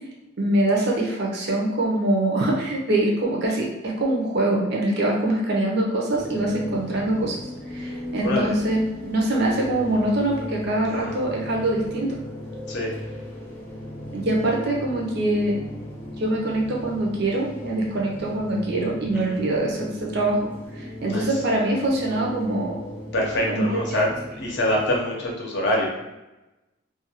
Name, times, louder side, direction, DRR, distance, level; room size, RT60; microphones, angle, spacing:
voice 1, 0.4-7.4 7.7-12.2 14.1-15.6 16.2-22.8 23.5-24.0, right 1 dB, 50° right, -2 dB, 0.6 m, -24 dB
sound 1, 6.1-25.0, left 1 dB, 10° left, 0.3 m, -36 dB
voice 2, 8.2-8.5 10.9-11.1 12.7-12.9 19.1-19.4 21.1-21.3 23.1-24.1 24.4-25.9, left 1 dB, 55° left, -2 dB, 0.7 m, -25 dB
2.4 x 2.3 x 2.8 m, 1.0 s
head